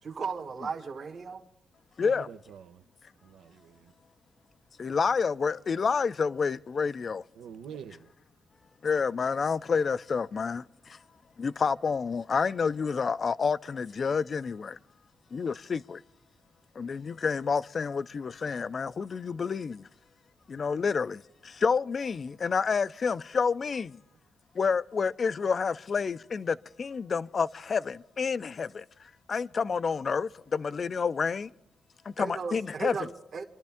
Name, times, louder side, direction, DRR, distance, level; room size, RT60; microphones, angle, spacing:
voice 1, 0.0-1.4 32.2-33.4, right 5 dB, 55° right, 1.4 m, -36 dB
voice 2, 2.0-2.8 3.2-3.9 7.4-8.1, right 7 dB, 90° right, 0.7 m, -46 dB
voice 3, 4.8-7.2 8.8-11.0 11.4-14.8 15.3-16.0 16.8-19.9 20.5-24.0 24.5-28.9 29.3-31.5 32.1-33.0, left 5 dB, 45° left, 0.4 m, -29 dB
26.5 x 12.0 x 3.5 m
cardioid pair, 100°, 0 cm